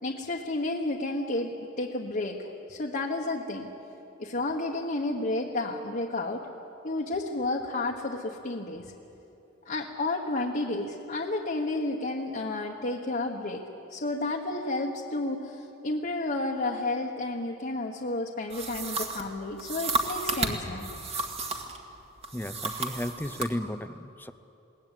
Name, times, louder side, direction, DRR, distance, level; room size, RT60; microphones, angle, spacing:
voice 1, 0.0-3.7 4.2-6.4 6.8-8.9 9.6-13.6 13.9-20.9, left 2 dB, 45° left, -1 dB, 1.3 m, -31 dB
sound 1, 18.5-21.8 22.2-23.5, right 3 dB, 30° right, 1.9 m, -32 dB
voice 2, 22.3-24.3, left 1 dB, 10° left, 13 dB, 0.6 m, -34 dB
22.0 x 18.5 x 9.2 m, 2.9 s
head